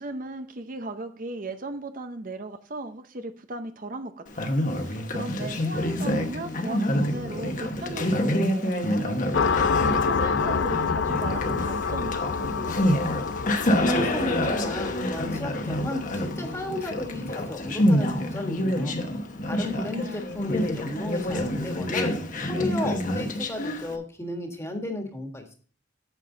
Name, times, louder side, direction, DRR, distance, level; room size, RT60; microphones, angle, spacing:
voice 1, 0.0-9.2 9.9-12.8 19.7-20.3, right 2 dB, 45° right, 8 dB, 0.7 m, -37 dB
Conversation, 4.3-24.0, left 1 dB, 45° left, 1.1 m, -27 dB
sound 1, 9.3-18.6, left 5 dB, 85° left, 0.5 m, -29 dB
voice 2, 13.5-19.0 19.4-22.1 22.4-25.5, left 2 dB, 15° left, 3 dB, 1.6 m, -34 dB
9.0 x 7.5 x 3.8 m, 0.43 s
head